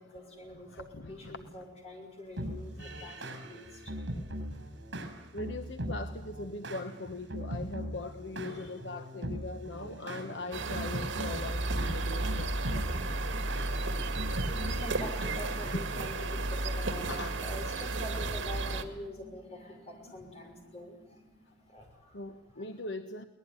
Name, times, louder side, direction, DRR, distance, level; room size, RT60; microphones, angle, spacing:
voice 1, 0.0-3.9 4.5-4.6 13.9-14.1 14.5-22.2 22.5-22.6, left 1 dB, 35° left, 2 dB, 6.3 m, -45 dB
voice 2, 0.7-1.5 2.7-3.3 5.3-13.0 15.7-15.8 17.1-17.4 22.1-23.2, left 2 dB, 65° left, 7 dB, 1.1 m, -41 dB
sound 1, 2.4-16.1, equal, 70° right, 6.5 m, -40 dB
sound 2, 10.5-18.8, right 2 dB, 85° right, 2.2 m, -33 dB
23.0 x 19.5 x 9.7 m, 0.92 s
head